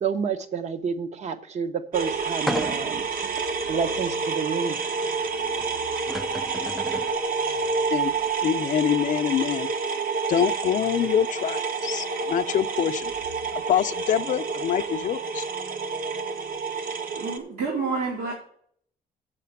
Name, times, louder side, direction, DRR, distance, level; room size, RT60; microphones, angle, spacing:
voice 1, 0.0-4.8, right 6 dB, 45° right, 0.8 m, -29 dB
sound 1, 1.9-17.4, right 4 dB, 60° right, 1.2 m, -29 dB
sound 2, 2.5-3.1 3.7-3.8 5.6-5.7 6.0-7.2, equal, ahead, 0.3 m, -33 dB
voice 2, 8.4-9.7 10.3-13.1 13.7-15.5, left 9 dB, 50° left, 0.5 m, -25 dB
voice 3, 17.0-18.3, right 4 dB, 80° right, 2.8 m, -29 dB
7.6 x 6.6 x 6.9 m
cardioid pair, 150°, 16 cm